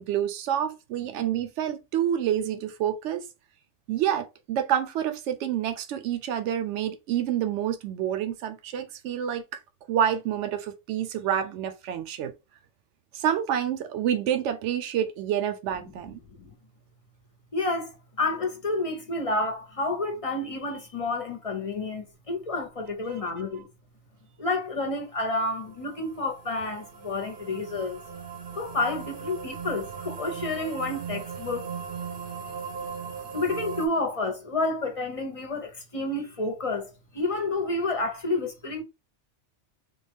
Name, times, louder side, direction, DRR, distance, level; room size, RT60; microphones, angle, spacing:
voice 1, 0.0-3.2 3.9-9.4 9.9-12.3 13.1-16.2 23.1-23.6, right 10 dB, 80° right, 0.9 m, -28 dB
voice 2, 17.5-23.7 24.4-28.0 28.6-31.7 32.3-32.4 33.3-38.8, left 2 dB, 40° left, 0.5 m, -30 dB
sound 1, 25.4-33.9, right 6 dB, 55° right, 0.7 m, -38 dB
3.4 x 2.2 x 3.4 m
omnidirectional pair, 1.2 m